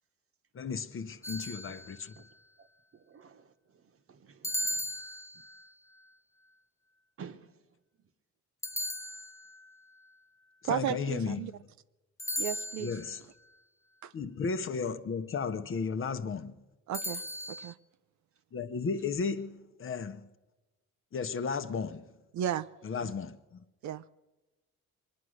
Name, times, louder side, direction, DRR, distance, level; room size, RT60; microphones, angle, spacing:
voice 1, 0.5-2.1 10.7-11.4 12.8-13.2 14.1-16.5 18.5-20.2 21.1-22.0 22.8-23.6, left 5 dB, 45° left, 0.9 m, -34 dB
sound 1, 1.2-2.2 4.4-5.7 8.6-9.7 12.2-13.2 16.9-17.7, left 1 dB, 10° left, 0.6 m, -37 dB
voice 2, 2.9-4.9 5.3-5.4 7.2-7.6, right 6 dB, 45° right, 1.1 m, -52 dB
voice 3, 10.6-11.5 12.4-13.0 14.0-14.1 16.9-17.2 17.5-17.8 22.3-22.7 23.0-23.1 23.8-24.0, right 11 dB, 70° right, 0.6 m, -34 dB
23.5 x 9.6 x 6.4 m
cardioid pair, 90°, 30 cm